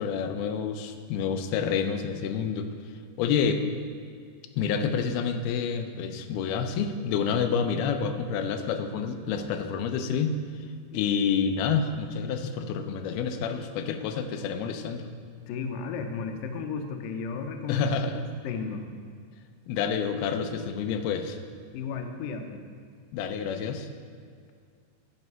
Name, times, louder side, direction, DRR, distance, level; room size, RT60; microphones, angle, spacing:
voice 1, 0.0-2.7 3.2-3.6 4.6-10.4 10.9-15.1 17.7-18.2 19.7-21.4 23.1-23.9, left 6 dB, 90° left, 6 dB, 2.6 m, -28 dB
voice 2, 15.5-17.9 18.4-18.9 21.7-22.6, left 5 dB, 75° left, 4 dB, 2.3 m, -34 dB
9.3 x 7.6 x 5.5 m, 2.1 s
omnidirectional pair, 4.4 m